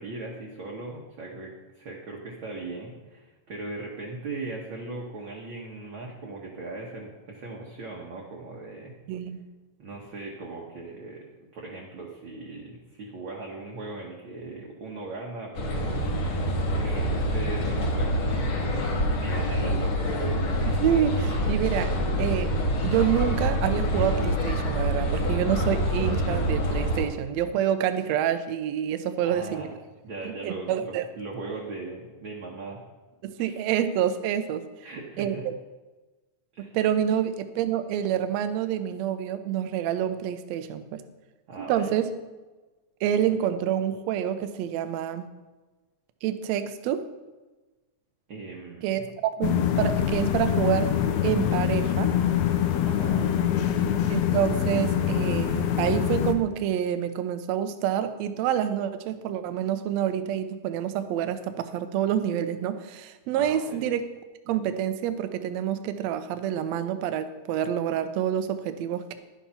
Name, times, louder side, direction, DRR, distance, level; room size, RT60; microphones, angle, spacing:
voice 1, 0.0-9.0 9.8-11.3 11.5-16.2 16.7-20.4 29.2-29.7 30.0-32.8 33.4-33.6 34.8-35.5 36.5-36.8 41.5-41.9 48.3-49.0 52.8-53.7 63.3-63.8, right 3 dB, 55° right, -2 dB, 1.5 m, -39 dB
voice 2, 9.1-9.4 20.7-22.5 22.8-29.7 30.2-31.0 33.2-34.7 35.2-35.3 36.6-41.0 41.6-42.1 43.0-45.3 46.2-47.1 48.8-50.9 51.2-52.1 54.1-64.0 64.5-69.1, right 10 dB, 75° right, 10 dB, 1.7 m, -27 dB
sound 1, 15.5-27.0, equal, 60° left, 2.7 m, -26 dB
sound 2, 49.4-56.3, left 9 dB, 75° left, 1.8 m, -24 dB
11.0 x 7.2 x 5.7 m, 1.2 s
omnidirectional pair, 3.7 m